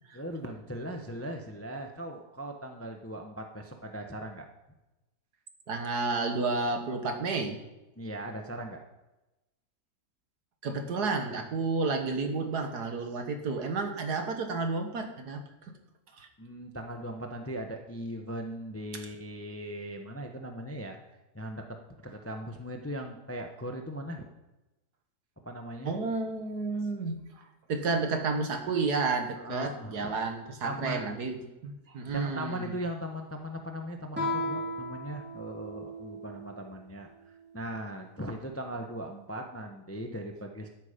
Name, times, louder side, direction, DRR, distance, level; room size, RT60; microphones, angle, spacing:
voice 1, 0.1-4.5 8.0-8.8 16.4-21.0 21.3-21.6 22.0-24.3 25.4-25.9 29.4-30.2 30.6-31.0 32.1-37.1 37.5-40.7, right 1 dB, 10° left, 4 dB, 0.7 m, -39 dB
voice 2, 5.7-7.6 10.6-15.4 16.2-16.3 25.8-27.4 27.7-32.7, right 3 dB, 70° right, 5 dB, 1.9 m, -31 dB
Guitar, 34.1-36.6, left 1 dB, 5° right, 3.3 m, -35 dB
13.0 x 8.4 x 5.1 m, 1.0 s
omnidirectional pair, 1.8 m